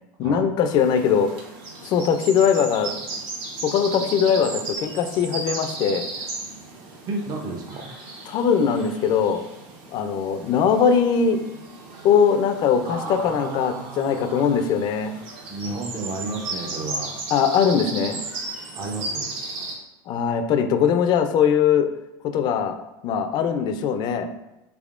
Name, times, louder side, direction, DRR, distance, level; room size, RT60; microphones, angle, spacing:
voice 1, 0.2-1.3 1.8-2.9 3.6-6.1 8.3-9.4 9.9-11.4 12.0-15.1 17.3-18.2 20.1-21.9 22.2-22.8 23.0-24.3, left 7 dB, 45° left, 8 dB, 0.4 m, -21 dB
sound 1, 0.7-19.7, right 3 dB, 60° right, 1.0 m, -35 dB
voice 2, 7.1-7.9 12.8-14.7 15.5-17.2 18.7-19.3, right 3 dB, 35° right, 1 dB, 0.6 m, -32 dB
3.6 x 3.4 x 2.4 m, 0.95 s
supercardioid pair, 125°, 11 cm